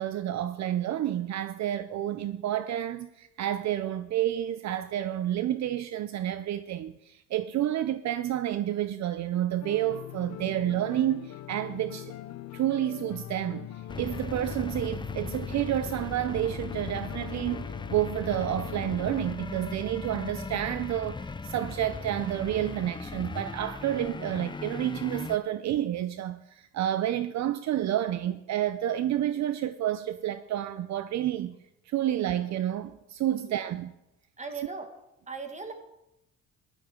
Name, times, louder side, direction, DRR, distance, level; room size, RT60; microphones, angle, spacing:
voice 1, 0.0-12.1 12.5-13.7 14.0-31.5 31.9-33.9, right 12 dB, 65° right, 0.6 m, -30 dB
sound 1, 9.6-19.4, left 13 dB, 65° left, 0.6 m, -42 dB
Digital Headspin, 13.9-25.4, left 4 dB, 15° left, 0.5 m, -38 dB
voice 2, 33.3-33.7 34.4-34.9 35.3-35.7, right 4 dB, 25° right, 1.9 m, -39 dB
15.0 x 12.5 x 3.7 m
cardioid pair, 90°, 30 cm